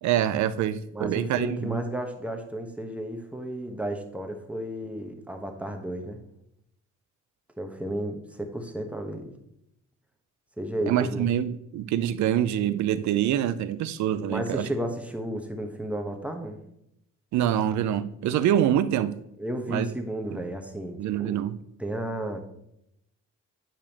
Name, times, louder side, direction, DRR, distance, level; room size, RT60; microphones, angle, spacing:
voice 1, 0.0-1.8 10.9-14.7 17.3-19.2 19.7-19.8 21.0-21.6, right 10 dB, 70° right, 13 dB, 0.5 m, -25 dB
voice 2, 0.9-6.2 7.6-9.3 10.6-11.3 14.3-16.6 19.4-21.4 21.8-22.4, right 1 dB, 5° right, 3 dB, 1.0 m, -33 dB
9.0 x 4.9 x 2.9 m, 0.79 s
cardioid pair, 90°, 30 cm